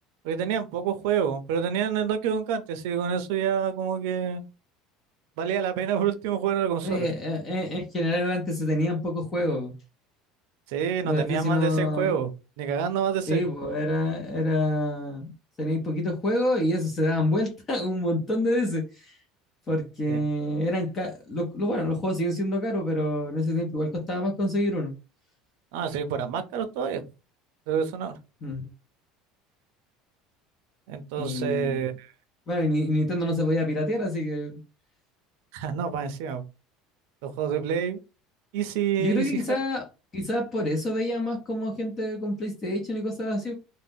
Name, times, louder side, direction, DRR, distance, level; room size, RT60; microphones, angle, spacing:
voice 1, 0.2-4.4 5.4-7.1 10.7-12.3 12.6-13.5 20.1-20.2 25.7-27.0 27.7-28.2 30.9-32.1 35.5-36.4 37.2-38.0 38.5-39.4, right 8 dB, 70° right, 0.5 m, -27 dB
voice 2, 6.8-9.7 11.0-12.1 13.3-15.3 15.6-19.2 19.7-24.9 28.4-28.7 31.2-31.8 32.5-34.6 39.0-39.9 40.1-43.5, left 1 dB, 20° left, 0.5 m, -27 dB
2.5 x 2.0 x 3.4 m
cardioid pair, 175°, 0 cm